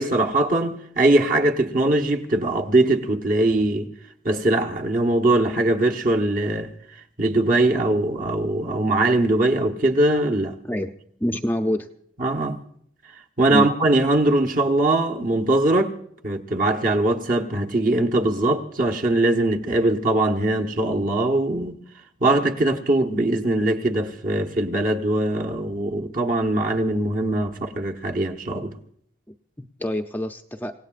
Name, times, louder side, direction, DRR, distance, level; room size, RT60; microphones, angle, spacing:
voice 1, 0.0-3.9 4.2-6.7 7.2-10.5 12.2-12.6 13.4-16.0 16.2-21.8 22.2-28.8, right 2 dB, 45° right, 1.3 m, -21 dB
voice 2, 11.2-11.9 13.5-13.7 29.6-30.7, left 1 dB, 10° left, 0.5 m, -26 dB
28.0 x 17.0 x 2.5 m
head